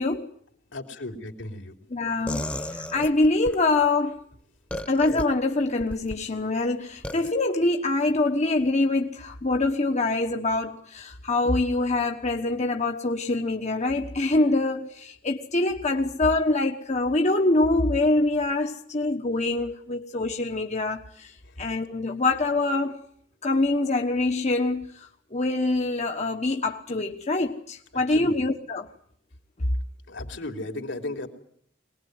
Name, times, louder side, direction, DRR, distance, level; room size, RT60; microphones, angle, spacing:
voice 1, 0.7-1.7 28.1-28.4 30.1-31.3, left 2 dB, 75° left, 3.3 m, -35 dB
voice 2, 1.9-4.2 4.9-23.0 23.4-28.9, left 2 dB, 40° left, 1.2 m, -25 dB
sound 1, 2.3-3.6 4.7-5.2 5.8-6.2 7.0-7.3, left 1 dB, 5° left, 1.2 m, -33 dB
23.5 x 20.0 x 9.6 m
head